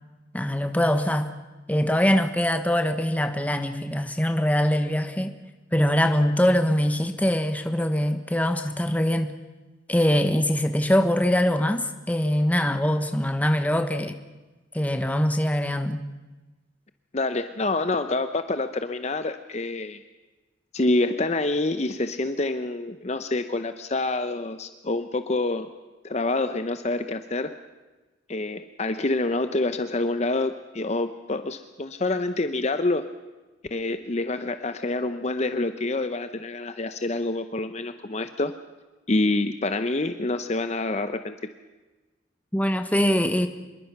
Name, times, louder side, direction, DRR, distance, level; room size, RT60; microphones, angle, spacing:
voice 1, 0.3-1.3 1.7-5.3 5.7-9.3 9.9-14.2 14.7-16.1 42.5-43.5, equal, 10° left, 7 dB, 1.2 m, -23 dB
voice 2, 17.1-20.0 20.7-25.7 26.0-27.6 28.3-33.1 33.7-38.5 39.1-41.4, left 2 dB, 35° left, 9 dB, 0.8 m, -27 dB
25.5 x 22.0 x 6.0 m, 1.2 s
head